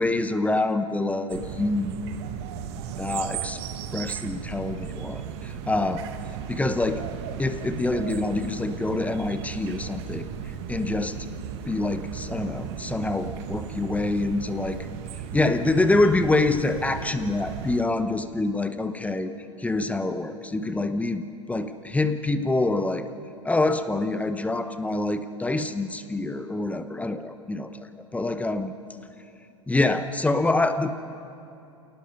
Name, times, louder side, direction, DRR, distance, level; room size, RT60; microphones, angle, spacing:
voice 1, 0.0-2.0 2.9-3.6 3.9-6.0 6.5-7.0 7.4-10.3 10.7-11.2 11.7-14.8 15.3-19.3 19.6-21.2 21.5-23.1 23.4-28.7 29.7-30.9, left 2 dB, 10° left, 9 dB, 1.0 m, -26 dB
sound 1, 1.3-17.8, right 9 dB, 55° right, 1.2 m, -36 dB
27.5 x 18.5 x 5.5 m, 2.7 s
hypercardioid pair, 95°, 17 cm